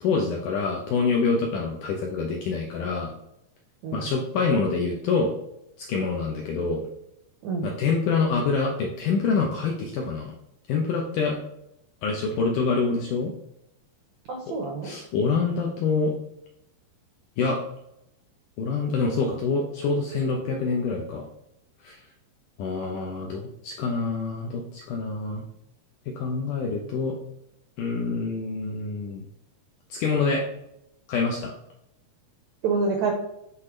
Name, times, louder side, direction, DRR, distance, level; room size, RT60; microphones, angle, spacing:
voice 1, 0.0-3.1 3.9-5.4 5.8-6.8 7.6-10.3 10.7-11.4 12.0-13.3 14.8-16.1 17.4-17.6 18.6-21.3 21.8-22.0 22.6-25.4 26.2-27.1 27.8-29.2 29.9-30.4 31.1-31.5, left 4 dB, 75° left, 0 dB, 1.9 m, -26 dB
voice 2, 14.3-14.9 32.6-33.1, right 4 dB, 80° right, 2 dB, 1.7 m, -27 dB
9.7 x 4.1 x 3.2 m, 0.79 s
omnidirectional pair, 4.6 m